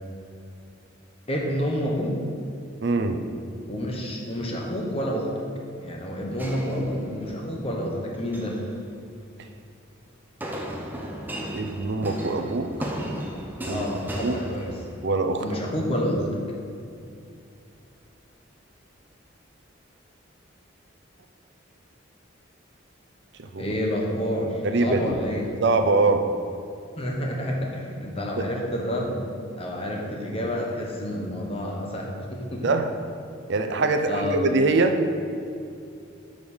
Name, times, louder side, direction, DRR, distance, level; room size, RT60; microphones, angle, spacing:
voice 1, 1.3-2.2 3.7-5.3 5.8-8.6 13.7-14.7 15.4-16.4 23.6-25.5 27.0-29.3 29.6-32.8 34.1-34.4, equal, 30° left, -1 dB, 1.0 m, -29 dB
voice 2, 2.8-3.2 11.5-12.7 13.7-13.8 14.2-14.4 15.0-15.4 23.4-23.6 24.6-25.1 25.6-26.3 28.4-28.5 32.6-32.9 33.5-35.0, right 3 dB, 60° right, 6 dB, 0.5 m, -23 dB
sound 1, 6.4-7.5 8.1-8.6 10.4-15.2, equal, 10° right, 0.6 m, -35 dB
6.4 x 5.1 x 5.5 m, 2.5 s
head